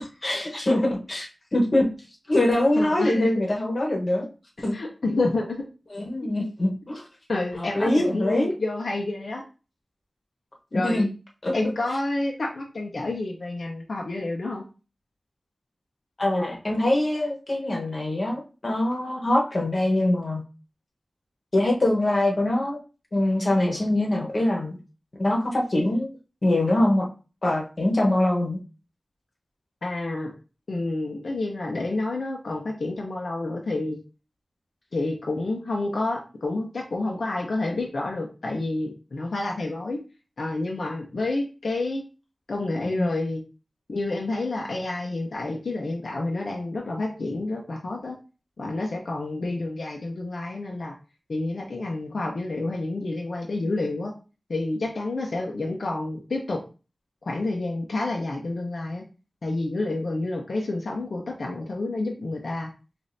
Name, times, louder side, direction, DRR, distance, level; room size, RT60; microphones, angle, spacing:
voice 1, 0.0-1.9 2.3-4.3 4.6-4.7 5.9-7.0 7.6-8.5 10.7-11.1 11.4-11.5 16.2-20.4 21.5-22.8 23.1-24.8 25.2-26.1 26.4-27.1 27.4-28.6 43.0-43.1, left 1 dB, 50° left, 0 dB, 1.1 m, -23 dB
voice 2, 2.8-3.3 4.7-5.6 7.3-9.4 10.7-11.1 11.5-14.6 29.8-30.3 30.7-34.0 34.9-40.0 40.4-42.0 42.5-43.4 43.9-48.2 48.6-50.9 51.3-54.1 54.5-56.6 57.2-59.0 59.4-62.7, left 2 dB, 85° left, 0 dB, 0.6 m, -29 dB
5.1 x 2.6 x 2.6 m, 0.33 s
wide cardioid pair, 85°, 0 cm